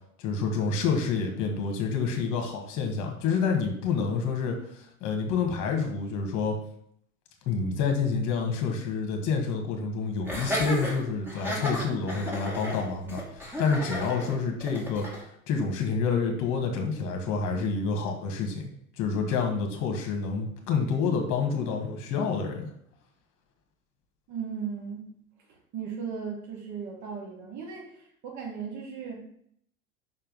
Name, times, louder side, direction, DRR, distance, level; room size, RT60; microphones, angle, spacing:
voice 1, 0.2-6.6 7.5-18.6 19.0-22.7, left 5 dB, 45° left, 3 dB, 1.8 m, -28 dB
Laughter, 10.3-15.2, equal, 5° right, 2.4 m, -33 dB
voice 2, 24.3-25.1 25.7-29.2, right 6 dB, 40° right, -1 dB, 2.6 m, -36 dB
5.8 x 4.4 x 5.4 m, 0.69 s
hypercardioid pair, 85°, 43 cm